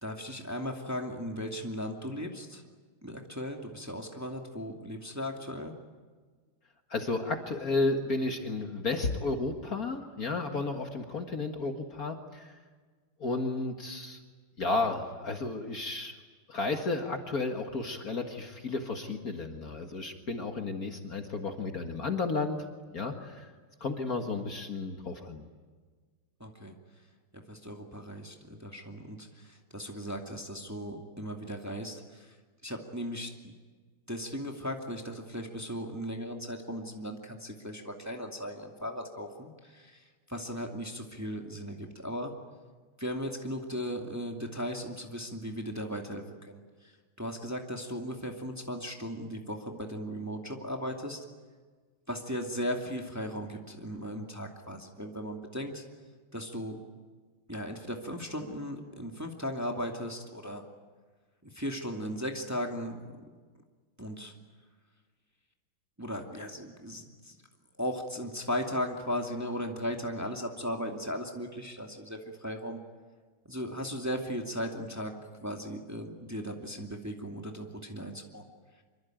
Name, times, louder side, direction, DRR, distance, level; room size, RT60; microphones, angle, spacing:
voice 1, 0.0-2.6 3.0-5.7 26.4-26.7 27.3-32.4 32.6-33.5 34.1-42.3 43.0-46.9 47.2-51.2 52.1-55.8 56.3-56.8 57.5-60.6 61.4-63.0 64.0-64.3 66.0-67.4 67.8-72.8 73.4-75.1 75.4-78.4, equal, 10° right, 2 dB, 2.3 m, -37 dB
voice 2, 6.9-12.5 13.2-14.2 14.6-16.2 16.5-22.6 22.9-23.5 23.8-25.4, left 3 dB, 45° left, 4 dB, 2.1 m, -32 dB
26.0 x 24.0 x 9.2 m, 1.5 s
omnidirectional pair, 2.3 m